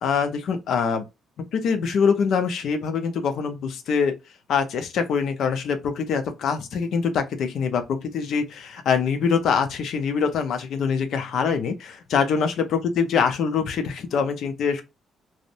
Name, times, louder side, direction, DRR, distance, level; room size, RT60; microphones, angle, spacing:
voice 1, 0.0-1.0 1.5-4.2 4.5-14.8, left 6 dB, 70° left, 0.6 m, -24 dB
2.6 x 2.0 x 2.6 m
cardioid pair, 90°, 0 cm